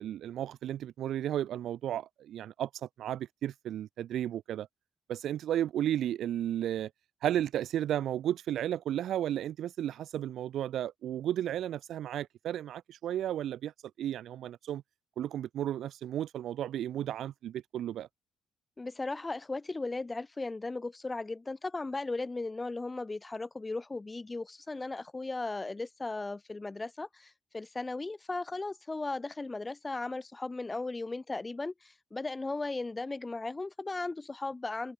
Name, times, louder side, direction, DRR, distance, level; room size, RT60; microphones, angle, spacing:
voice 1, 0.0-4.7 5.1-6.9 7.2-13.7 14.0-14.8 15.2-18.1, right 11 dB, 75° right, 0.7 m, -33 dB
voice 2, 18.8-34.9, left 3 dB, 20° left, 5.5 m, -36 dB
cardioid pair, 90°, 0 cm